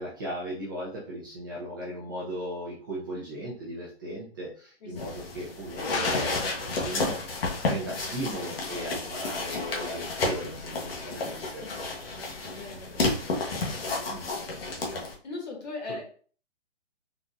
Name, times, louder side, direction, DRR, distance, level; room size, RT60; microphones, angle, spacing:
voice 1, 0.0-7.2 7.6-11.6 14.1-14.2, equal, 20° right, -6 dB, 0.6 m, -37 dB
voice 2, 4.8-5.5 7.8-8.1 11.6-14.2 14.8-16.0, left 3 dB, 40° left, 0 dB, 1.5 m, -42 dB
sound 1, 4.9-15.1, left 3 dB, 60° left, 1.1 m, -31 dB
sound 2, 5.9-7.1 7.5-7.8 8.3-8.5, left 3 dB, 85° left, 1.0 m, -36 dB
4.0 x 2.6 x 2.3 m, 0.43 s
hypercardioid pair, 155°, 33 cm